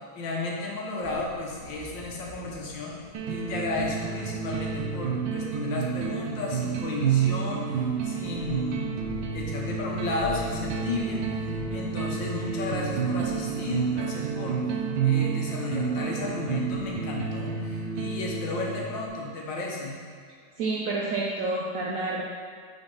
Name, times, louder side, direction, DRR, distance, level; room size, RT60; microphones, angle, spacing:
voice 1, 0.2-2.9 3.3-8.9 9.3-11.2 11.7-14.6 15.0-20.0, left 3 dB, 80° left, -2 dB, 1.7 m, -33 dB
sound 1, 1.0-17.2, left 1 dB, 25° right, 1.2 m, -46 dB
sound 2, 3.1-19.1, right 6 dB, 85° right, 1.4 m, -30 dB
voice 2, 20.6-22.2, right 3 dB, 70° right, -3 dB, 0.8 m, -29 dB
5.8 x 4.0 x 5.3 m, 2.1 s
omnidirectional pair, 2.0 m